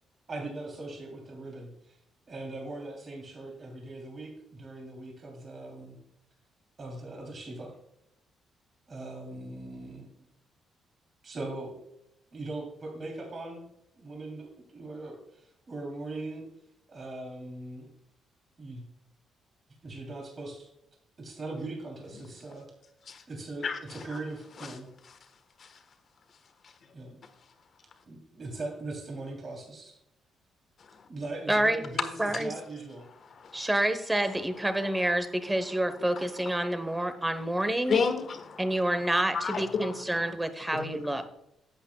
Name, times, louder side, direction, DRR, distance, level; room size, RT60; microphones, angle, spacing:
voice 1, 0.3-2.0 2.3-6.0 6.8-7.8 8.9-10.1 11.2-11.7 12.3-13.6 13.9-16.5 16.9-17.9 18.6-18.8 19.8-20.7 21.2-22.7 23.3-24.9 26.9-27.2 28.0-30.0 31.1-33.1, right 2 dB, 45° right, 3.1 m, -40 dB
voice 2, 23.6-24.0 24.6-24.8 25.6-25.8 26.6-26.7 30.8-31.0 33.3-33.7 34.7-34.9 36.1-36.5 36.9-37.0 37.4-37.5 37.9-40.3 40.6-41.3, left 5 dB, 55° left, 1.3 m, -34 dB
voice 3, 31.5-31.8 32.2-32.5 33.5-38.0 38.6-41.2, right 1 dB, 10° right, 1.0 m, -28 dB
11.5 x 8.3 x 2.3 m
cardioid pair, 85°, 0 cm